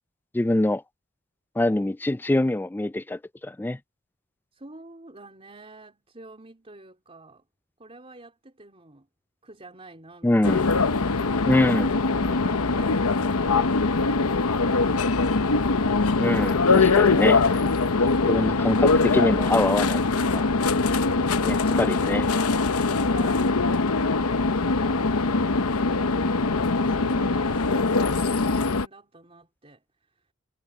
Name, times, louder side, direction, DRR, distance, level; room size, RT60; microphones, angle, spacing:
voice 1, 0.3-0.8 1.6-3.8 10.2-10.6 11.5-11.9 16.2-17.5 18.0-20.0 20.3-20.4 21.4-22.3, left 1 dB, 10° left, 0.3 m, -24 dB
voice 2, 4.5-7.4 7.8-9.1 9.4-10.9 11.2-11.6 12.1-15.5 22.9-25.9 26.2-29.8 30.2-30.3, right 2 dB, 25° right, 3.8 m, -48 dB
sound 1, 10.4-28.9, left 3 dB, 80° left, 0.9 m, -22 dB
head